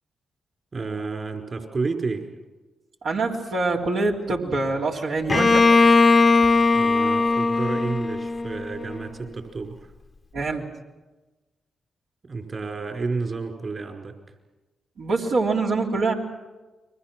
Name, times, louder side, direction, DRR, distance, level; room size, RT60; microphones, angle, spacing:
voice 1, 0.7-2.3 6.7-9.9 12.2-14.2, right 4 dB, 50° right, 3 dB, 4.9 m, -30 dB
voice 2, 3.0-5.7 10.3-10.7 15.0-16.1, right 3 dB, 75° right, -2 dB, 3.6 m, -24 dB
Bowed string instrument, 5.3-9.0, left 3 dB, 40° left, 1.0 m, -19 dB
30.0 x 22.5 x 6.2 m, 1.2 s
supercardioid pair, 45°, 0 cm